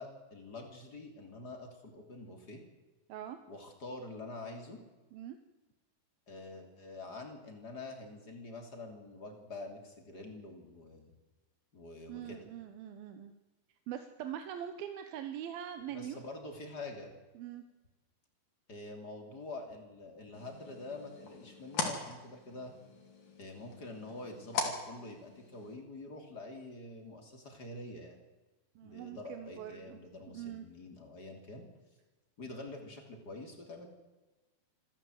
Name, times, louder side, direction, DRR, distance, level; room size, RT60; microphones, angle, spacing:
voice 1, 0.0-2.6 3.5-4.8 6.3-11.1 11.7-12.5 15.9-17.1 18.7-22.8 23.4-28.2 28.8-31.7 32.4-33.9, left 2 dB, 25° left, 4 dB, 3.3 m, -46 dB
voice 2, 12.1-13.3 13.9-16.2 17.4-17.6 28.8-30.0 30.3-30.7, right 10 dB, 75° right, 8 dB, 2.9 m, -42 dB
sound 1, 20.3-25.7, left 4 dB, 60° left, 4.5 m, -41 dB
26.5 x 13.5 x 8.0 m, 1.2 s
omnidirectional pair, 4.3 m